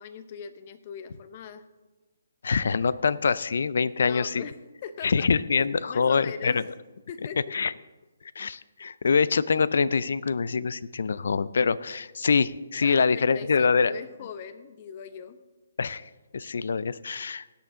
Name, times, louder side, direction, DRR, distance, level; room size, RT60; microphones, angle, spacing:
voice 1, 0.0-1.6 4.1-4.5 4.8-5.3 5.8-6.7 7.1-7.4 12.8-15.4, left 7 dB, 35° left, 12 dB, 0.8 m, -40 dB
voice 2, 2.4-4.4 5.0-6.6 7.5-7.7 8.4-13.9 15.8-17.6, left 5 dB, 65° left, 18 dB, 0.5 m, -25 dB
17.0 x 8.6 x 3.8 m, 1.2 s
hypercardioid pair, 150°, 0 cm